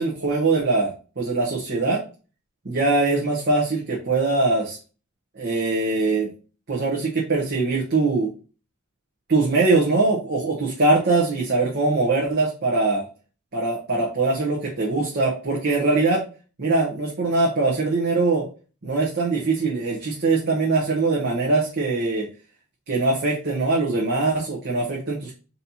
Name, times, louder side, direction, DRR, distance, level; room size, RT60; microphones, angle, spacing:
voice 1, 0.0-2.0 2.6-4.8 5.4-6.3 6.7-8.3 9.3-13.1 13.5-16.2 16.6-18.5 18.8-22.3 22.9-25.3, right 3 dB, 45° right, -3 dB, 0.9 m, -22 dB
4.2 x 2.8 x 4.1 m, 0.36 s
head